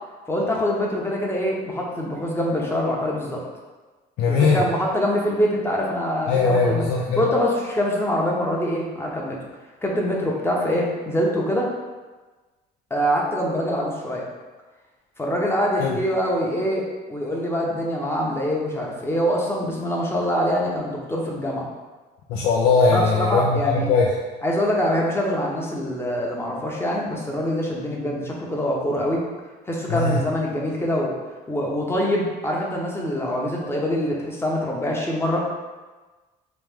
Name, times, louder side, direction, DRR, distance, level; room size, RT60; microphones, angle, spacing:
voice 1, 0.3-3.4 4.3-6.9 7.2-9.4 9.8-11.7 12.9-14.3 15.2-21.7 22.9-23.9 24.4-29.2 29.7-31.1 31.5-35.4, equal, 15° left, -2 dB, 0.8 m, -24 dB
voice 2, 4.2-4.6 6.3-7.2 15.8-16.0 22.3-24.1 29.9-30.2, left 4 dB, 80° left, -2 dB, 0.5 m, -20 dB
3.2 x 3.0 x 3.6 m, 1.3 s
cardioid pair, 110°, 17 cm